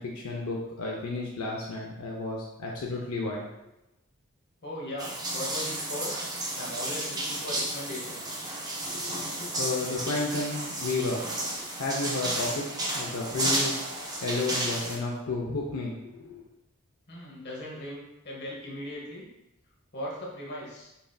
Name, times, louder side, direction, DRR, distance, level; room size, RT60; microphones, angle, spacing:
voice 1, 0.0-3.5 8.9-11.2 11.8-12.7 12.9-13.8 14.2-16.4, left 3 dB, 80° left, -2 dB, 0.5 m, -32 dB
voice 2, 4.6-6.1 6.6-8.5 17.1-19.3 19.9-20.9, left 1 dB, 50° left, -3 dB, 0.9 m, -38 dB
sound 1, 5.0-15.0, right 1 dB, 20° right, 0.4 m, -32 dB
5.3 x 2.6 x 2.2 m, 0.90 s
head